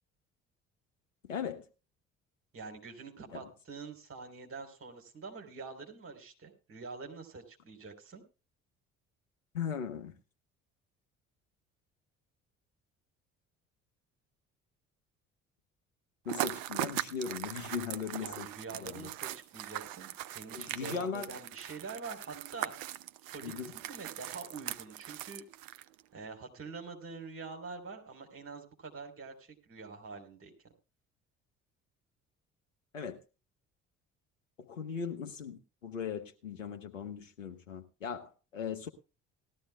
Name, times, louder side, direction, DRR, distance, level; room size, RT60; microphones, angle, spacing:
voice 1, 1.2-1.7 3.3-3.4 9.5-10.1 16.2-18.5 18.8-19.1 20.5-21.3 23.4-23.7 32.9-33.2 34.7-38.9, left 6 dB, 80° left, 1.1 m, -38 dB
voice 2, 2.5-8.2 18.2-22.7 23.2-25.5 26.1-30.5, right 4 dB, 35° right, 3.6 m, -45 dB
sound 1, 16.3-26.0, right 14 dB, 55° right, 0.6 m, -40 dB
18.5 x 13.0 x 2.2 m
figure-of-eight pair, 50°, 38 cm